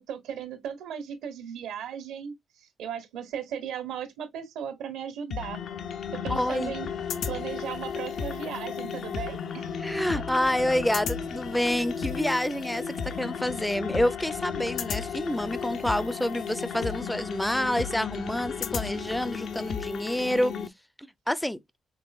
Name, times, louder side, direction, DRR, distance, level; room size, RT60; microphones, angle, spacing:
voice 1, 0.0-2.3 2.6-5.6 6.1-6.9 7.2-9.7 10.1-10.2, right 8 dB, 90° right, 1.4 m, -36 dB
sound 1, 5.3-20.7, left 6 dB, 65° left, 0.6 m, -34 dB
voice 2, 6.3-6.7 9.7-20.5 21.0-21.6, left 1 dB, 5° left, 0.4 m, -28 dB
5.4 x 3.6 x 2.3 m
cardioid pair, 90°, 0 cm